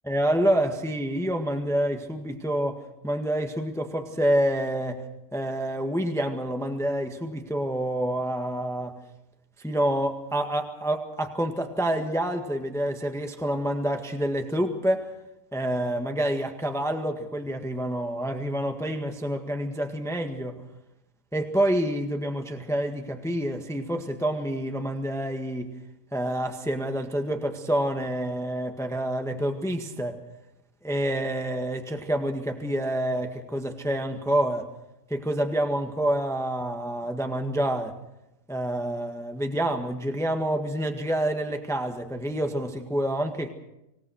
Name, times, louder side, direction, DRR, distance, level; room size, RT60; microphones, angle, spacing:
voice 1, 0.0-5.0 5.3-8.9 9.6-15.1 15.5-20.6 21.3-25.7 26.1-30.2 30.8-34.7 35.1-37.9 38.5-43.5, right 1 dB, ahead, 4 dB, 1.6 m, -27 dB
25.5 x 18.0 x 6.4 m, 0.89 s
omnidirectional pair, 1.8 m